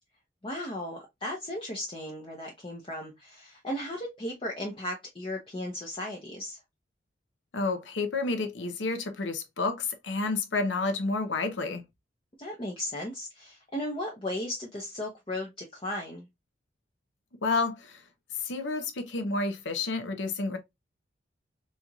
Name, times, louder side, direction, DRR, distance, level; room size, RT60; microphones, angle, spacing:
voice 1, 0.4-6.6 12.4-16.3, left 1 dB, 30° left, 0.7 m, -36 dB
voice 2, 7.5-11.8 17.4-18.0 18.4-20.6, left 3 dB, 85° left, 0.8 m, -30 dB
4.3 x 2.9 x 2.3 m
head